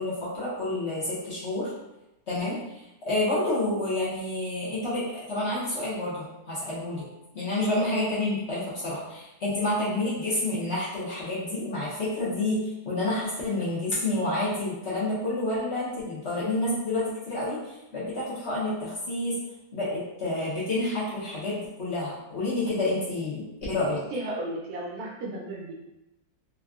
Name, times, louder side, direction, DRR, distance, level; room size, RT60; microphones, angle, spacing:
voice 1, 0.0-1.7 2.3-2.6 3.1-7.0 7.3-19.4 19.7-24.0, left 2 dB, 50° left, -8 dB, 0.9 m, -29 dB
voice 2, 24.1-25.7, right 1 dB, 70° right, -3 dB, 1.1 m, -34 dB
3.5 x 2.2 x 2.3 m, 0.95 s
omnidirectional pair, 1.8 m